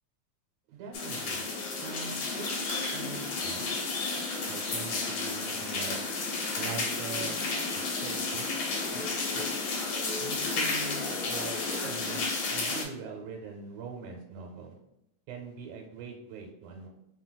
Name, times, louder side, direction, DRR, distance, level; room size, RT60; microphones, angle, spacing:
voice 1, 0.7-1.5 1.8-2.5 2.9-3.7 4.5-6.0 6.6-7.4 7.8-8.5 8.9-9.4 10.2-14.8 15.3-16.9, right 5 dB, 90° right, 1 dB, 2.1 m, -42 dB
sound 1, 0.9-12.8, left 3 dB, 85° left, 1.0 m, -32 dB
4.5 x 4.0 x 2.2 m, 0.88 s
omnidirectional pair, 3.4 m